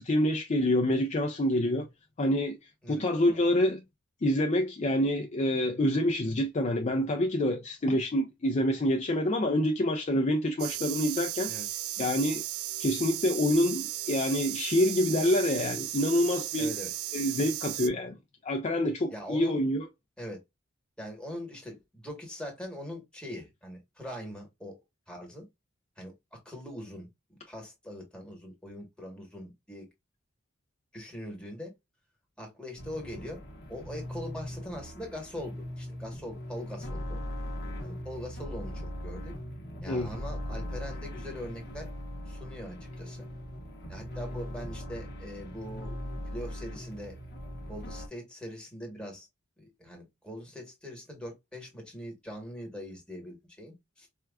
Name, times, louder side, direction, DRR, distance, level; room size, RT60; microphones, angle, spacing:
voice 1, 0.0-1.9 2.2-2.6 2.9-3.8 4.2-11.5 12.0-12.4 12.8-16.7 17.1-18.2 18.4-19.8 39.9-40.2, left 1 dB, 35° left, 0.5 m, -27 dB
sound 1, 10.6-17.9, right 13 dB, 80° right, 0.4 m, -35 dB
voice 2, 16.6-16.9 19.1-19.6 20.2-20.4 21.0-24.7 25.1-25.5 26.0-27.1 27.5-29.9 30.9-31.7 32.4-33.4 33.7-37.2 37.8-39.3 39.8-41.9 42.3-43.2 43.9-46.0 46.3-47.2 47.7-49.3 49.6-54.1, equal, 5° left, 1.2 m, -42 dB
sound 2, 32.8-48.1, equal, 55° left, 0.9 m, -39 dB
4.5 x 2.3 x 2.2 m
head